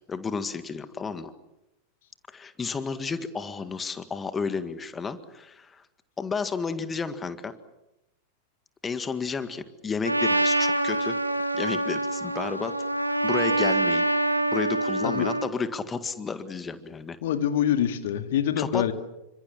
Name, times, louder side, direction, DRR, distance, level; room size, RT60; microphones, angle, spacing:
voice 1, 0.1-1.3 2.3-5.8 6.2-7.5 8.8-11.2 11.5-12.7 13.2-14.1 14.5-17.2 18.6-18.8, left 5 dB, 15° left, 11 dB, 1.8 m, -32 dB
Trumpet, 10.0-15.5, right 1 dB, 85° right, 2.0 m, -25 dB
voice 2, 17.2-18.9, left 10 dB, 55° left, 9 dB, 2.0 m, -25 dB
28.5 x 25.5 x 7.4 m, 0.90 s
figure-of-eight pair, 90°, 0 cm